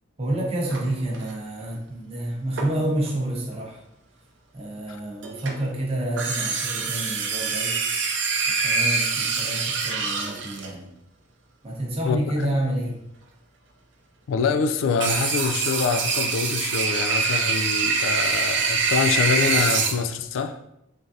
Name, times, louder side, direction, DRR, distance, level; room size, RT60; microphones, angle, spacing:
voice 1, 0.2-3.8 4.5-7.8 8.5-10.9 11.6-13.0, right 1 dB, 30° right, 0.7 m, -29 dB
sound 1, 0.7-1.3 2.6-3.1 5.2-5.7 6.2-10.7 15.0-19.9, right 4 dB, 60° right, 0.5 m, -25 dB
voice 2, 12.0-12.5 14.3-20.6, left 5 dB, 80° left, 0.3 m, -25 dB
3.6 x 3.2 x 2.7 m
head